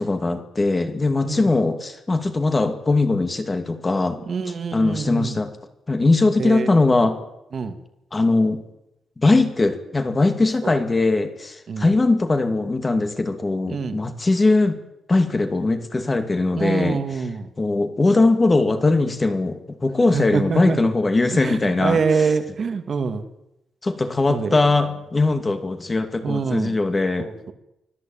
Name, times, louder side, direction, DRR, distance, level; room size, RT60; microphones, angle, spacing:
voice 1, 0.0-4.2 4.5-5.5 5.9-7.2 8.1-8.6 9.2-14.8 15.1-17.0 17.6-22.0 23.8-27.3, left 2 dB, 20° left, 8 dB, 2.5 m, -20 dB
voice 2, 4.3-5.4 6.4-6.8 7.5-7.8 10.6-10.8 11.7-11.9 13.7-14.0 16.5-17.5 20.1-20.8 21.3-23.2 24.3-24.6 26.2-26.8 27.2-27.5, right 5 dB, 40° right, 8 dB, 2.3 m, -25 dB
24.5 x 17.5 x 9.0 m, 0.86 s
wide cardioid pair, 165°, 0 cm